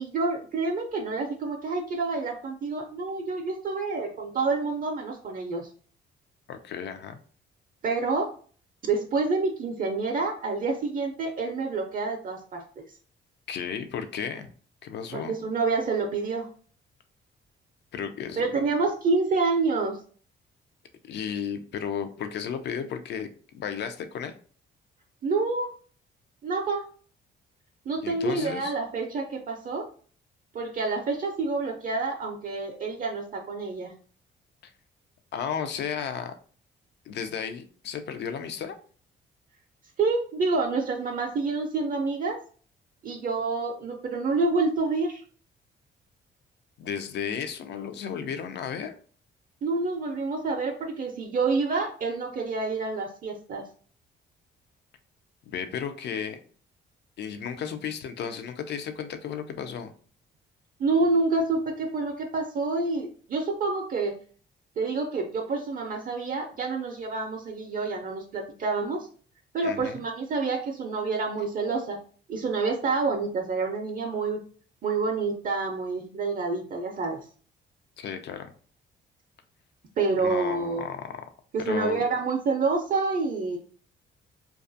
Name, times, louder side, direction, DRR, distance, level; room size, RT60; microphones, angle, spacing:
voice 1, 0.0-5.7 7.8-8.3 8.8-12.6 15.1-16.5 18.4-20.0 25.2-25.7 26.4-26.8 27.9-29.9 30.5-33.9 40.0-42.4 43.0-45.2 49.6-53.6 60.8-64.1 64.8-69.1 69.5-72.0 72.3-74.4 74.8-77.2 80.0-80.8 81.5-83.6, right 3 dB, 45° right, 3 dB, 0.4 m, -28 dB
voice 2, 6.5-7.2 13.5-14.5 14.8-15.3 17.9-18.7 21.0-23.3 23.5-24.3 28.0-28.7 34.6-34.7 35.3-36.3 37.1-38.8 46.8-49.0 55.5-56.4 57.2-59.9 69.6-70.0 78.0-78.5 80.2-81.1 81.6-82.1, left 7 dB, 60° left, 8 dB, 0.4 m, -34 dB
2.4 x 2.3 x 2.6 m, 0.43 s
cardioid pair, 90°, 20 cm